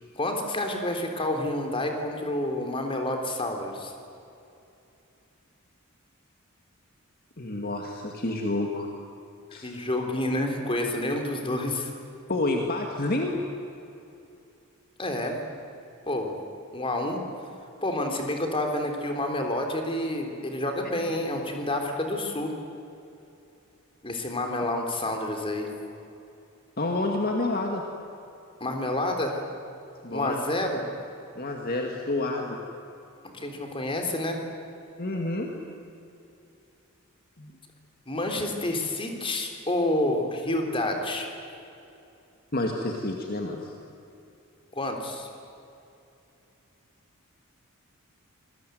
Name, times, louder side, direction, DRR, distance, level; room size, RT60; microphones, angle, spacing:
voice 1, 0.1-3.9 9.6-11.9 15.0-15.4 16.1-16.3 16.7-17.2 17.8-22.5 24.0-25.7 28.6-29.4 30.1-30.8 33.2-34.4 38.1-41.3 44.7-45.3, left 1 dB, 25° left, 3 dB, 3.7 m, -29 dB
voice 2, 7.4-8.9 9.5-9.7 12.3-13.4 26.8-27.8 30.0-30.4 31.4-32.6 35.0-35.5 37.4-37.5 42.5-43.7, left 2 dB, 45° left, 2 dB, 2.2 m, -29 dB
26.5 x 20.5 x 9.4 m, 2.7 s
head